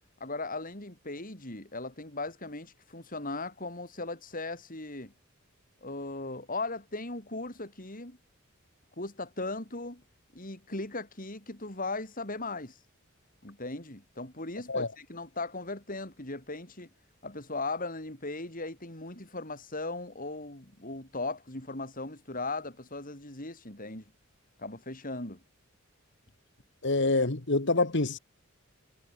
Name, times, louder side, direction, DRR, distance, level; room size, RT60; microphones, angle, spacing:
voice 1, 0.2-5.1 5.8-8.2 9.0-10.0 10.3-12.8 13.4-16.9 17.2-24.0 24.6-25.4, left 2 dB, 40° left, 5.8 m, -38 dB
voice 2, 26.8-28.2, left 2 dB, 55° left, 1.8 m, -26 dB
head